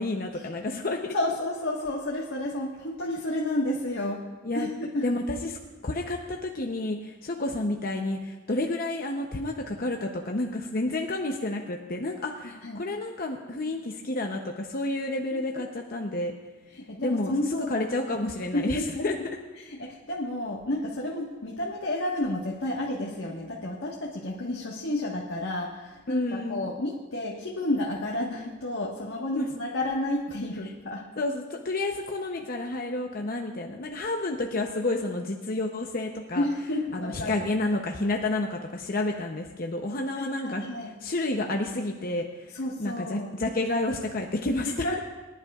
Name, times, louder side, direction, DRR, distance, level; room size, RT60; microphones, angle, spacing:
voice 1, 0.0-1.1 4.4-4.7 5.0-16.3 17.0-19.2 26.1-26.7 29.3-29.5 31.2-36.5 36.9-40.7 41.0-44.9, left 2 dB, 45° left, 2 dB, 0.8 m, -30 dB
voice 2, 1.1-4.2 4.5-4.7 4.9-5.1 12.6-12.8 16.7-17.8 18.5-19.1 19.6-31.0 36.3-37.4 40.1-40.9 42.5-43.3 44.8-45.0, left 1 dB, 70° left, -3 dB, 1.5 m, -31 dB
23.5 x 11.0 x 2.4 m, 1.2 s
head